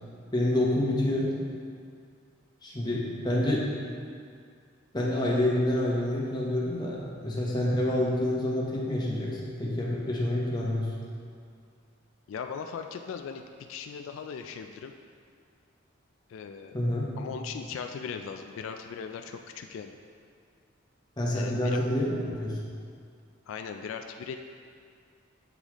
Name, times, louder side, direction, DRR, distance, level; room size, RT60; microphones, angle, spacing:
voice 1, 0.3-1.3 2.6-3.7 4.9-10.9 16.7-17.1 21.2-22.6, left 1 dB, 20° left, -5 dB, 0.9 m, -27 dB
voice 2, 12.3-14.9 16.3-16.8 17.1-20.0 21.3-21.8 23.5-24.4, left 6 dB, 85° left, 6 dB, 0.3 m, -38 dB
8.0 x 3.9 x 3.0 m, 2.2 s
head